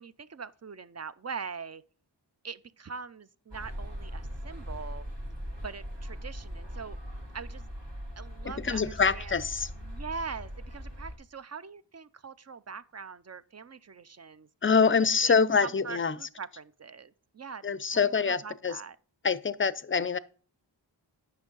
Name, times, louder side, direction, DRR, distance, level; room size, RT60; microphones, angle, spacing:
voice 1, 0.0-1.8 2.4-5.0 5.6-7.0 7.3-7.7 8.2-9.3 9.9-14.5 15.2-15.4 15.6-17.6 17.9-19.0, right 5 dB, 35° right, 0.4 m, -42 dB
sound 1, 3.5-11.2, equal, 70° right, 2.2 m, -40 dB
voice 2, 8.4-9.7 14.6-16.2 17.6-18.8 19.2-20.2, left 5 dB, 30° left, 0.4 m, -25 dB
8.8 x 6.1 x 3.8 m
wide cardioid pair, 40°, 45 cm